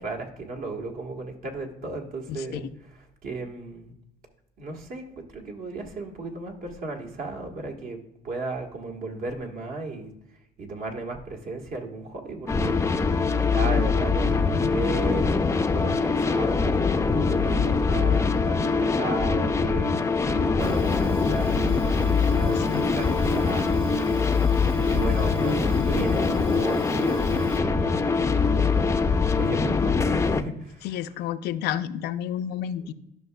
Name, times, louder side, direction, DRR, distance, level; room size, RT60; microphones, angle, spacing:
voice 1, 0.0-3.9 4.6-8.0 8.2-10.1 10.6-15.4 15.7-19.9 20.2-28.2 28.5-29.0 29.4-31.1, right 3 dB, 60° right, 2 dB, 1.4 m, -35 dB
voice 2, 2.3-2.6 22.5-22.9 30.8-32.9, left 10 dB, 75° left, 11 dB, 0.5 m, -30 dB
sound 1, 12.5-30.4, left 4 dB, 15° left, 0.4 m, -23 dB
Fire, 20.6-27.6, right 2 dB, 30° right, 1.0 m, -42 dB
12.5 x 5.7 x 2.2 m, 0.83 s
cardioid pair, 110°, 17 cm